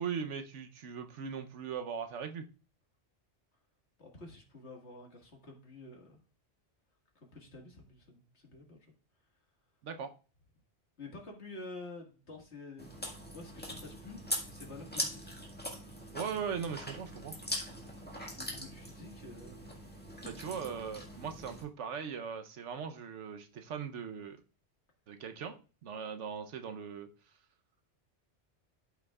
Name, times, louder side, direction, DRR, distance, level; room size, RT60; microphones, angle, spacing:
voice 1, 0.0-2.5 9.8-10.1 16.1-17.3 20.2-24.4 25.1-27.1, right 7 dB, 85° right, 7 dB, 1.1 m, -39 dB
voice 2, 4.0-6.2 7.2-8.9 11.0-15.4 16.0-16.2 18.4-19.8 20.4-20.5, left 2 dB, 65° left, 1 dB, 2.2 m, -49 dB
Chewing mastication, 12.8-21.6, equal, 10° left, 1.7 m, -42 dB
13.0 x 5.8 x 2.4 m, 0.35 s
omnidirectional pair, 1.2 m